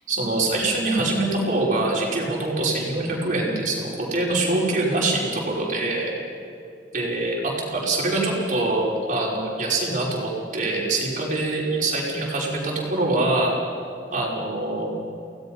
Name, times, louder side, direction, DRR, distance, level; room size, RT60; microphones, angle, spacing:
voice 1, 0.1-6.1 6.9-13.5 14.1-14.9, right 2 dB, 50° right, -4 dB, 5.7 m, -24 dB
28.5 x 18.0 x 5.5 m, 2.5 s
head